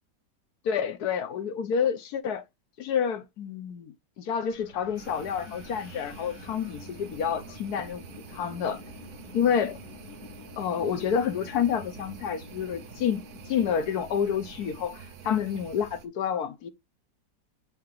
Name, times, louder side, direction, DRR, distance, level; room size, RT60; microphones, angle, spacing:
voice 1, 0.6-2.4 2.8-8.8 9.3-9.8 10.6-13.2 13.5-16.7, left 7 dB, 70° left, 1.2 m, -29 dB
Wind, 4.5-14.8, left 5 dB, 85° left, 2.1 m, -48 dB
sound 1, 5.0-16.1, right 7 dB, 65° right, 1.3 m, -47 dB
8.5 x 2.9 x 3.8 m
omnidirectional pair, 1.9 m